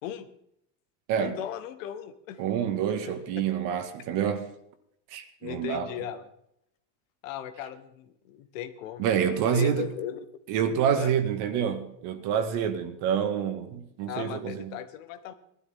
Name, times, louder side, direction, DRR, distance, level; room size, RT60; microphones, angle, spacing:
voice 1, 1.1-2.4 3.1-3.4 5.4-6.3 7.2-10.2 10.9-11.1 14.1-15.3, left 10 dB, 80° left, 1.6 m, -37 dB
voice 2, 2.4-4.5 5.1-5.9 9.0-9.9 10.5-14.8, right 8 dB, 50° right, 1.9 m, -27 dB
18.0 x 12.5 x 3.8 m
supercardioid pair, 155°, 39 cm